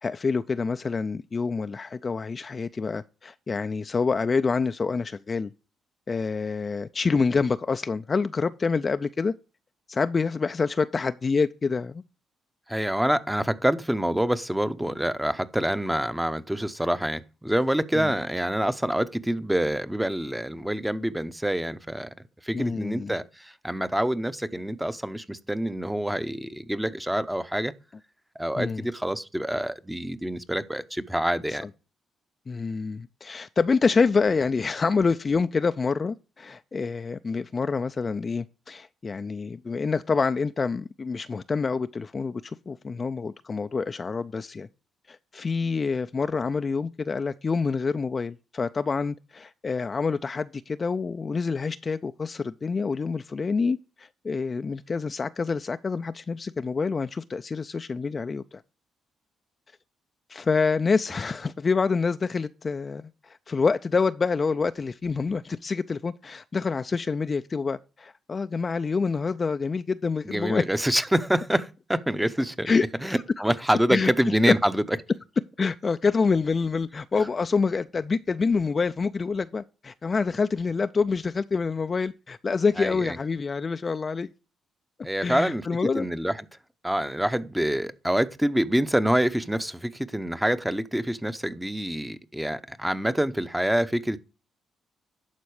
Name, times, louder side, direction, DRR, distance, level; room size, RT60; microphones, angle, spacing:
voice 1, 0.0-5.5 6.1-9.3 9.9-12.0 17.9-18.1 22.5-23.1 28.6-28.8 31.5-31.7 32.5-44.7 45.1-58.6 60.3-70.6 72.7-72.8 73.9-74.1 74.5-74.6 75.6-84.3 85.2-86.1, left 4 dB, 35° left, 0.3 m, -27 dB
voice 2, 12.7-22.1 22.4-27.7 28.4-31.7 70.2-74.8 82.8-83.2 85.0-85.7 85.9-86.4 86.8-94.2, right 1 dB, 5° right, 0.7 m, -26 dB
11.5 x 4.2 x 4.8 m
cardioid pair, 90°, 0 cm